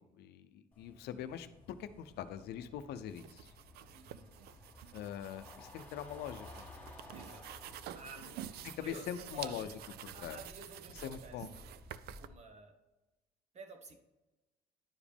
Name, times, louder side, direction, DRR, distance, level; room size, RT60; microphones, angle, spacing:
voice 1, 0.0-3.5 4.9-6.7 8.6-9.7 10.0-10.4 11.0-11.5, left 9 dB, 75° left, 11 dB, 0.6 m, -43 dB
sound 1, 0.7-12.3, left 3 dB, 10° left, 1.7 m, -56 dB
sound 2, 3.1-12.3, right 11 dB, 70° right, 0.4 m, -50 dB
voice 2, 3.9-4.3 7.1-7.6 7.9-9.7 10.1-11.5 12.2-12.8 13.5-14.0, right 3 dB, 40° right, 6 dB, 1.3 m, -52 dB
10.5 x 5.0 x 3.5 m, 1.1 s
cardioid pair, 110°, 17 cm